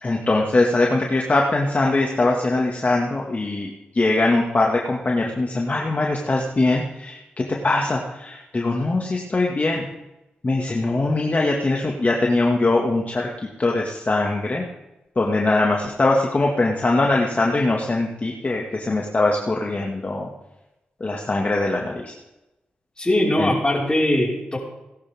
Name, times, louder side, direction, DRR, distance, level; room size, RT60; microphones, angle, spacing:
voice 1, 0.0-9.9 10.4-13.3 13.6-14.6 15.2-20.3 21.0-22.1 23.4-23.5, left 2 dB, 40° left, -1 dB, 2.1 m, -22 dB
voice 2, 23.0-24.6, left 1 dB, 20° left, -3 dB, 5.3 m, -20 dB
19.0 x 11.5 x 3.7 m, 0.98 s
supercardioid pair, 40°, 4 cm